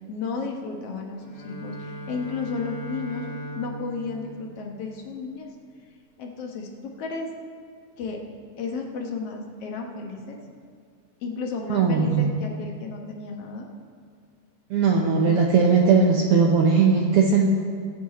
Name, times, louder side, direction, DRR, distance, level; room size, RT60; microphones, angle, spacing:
voice 1, 0.1-3.3 3.6-5.5 6.2-7.3 8.0-8.2 8.6-10.4 11.2-13.7, left 4 dB, 60° left, 1 dB, 1.8 m, -33 dB
Bowed string instrument, 1.1-5.3, right 1 dB, 45° left, 3.6 m, -39 dB
voice 2, 11.7-12.3 14.7-17.5, right 5 dB, 85° right, -1 dB, 1.2 m, -19 dB
20.5 x 7.4 x 4.2 m, 2.1 s
omnidirectional pair, 3.8 m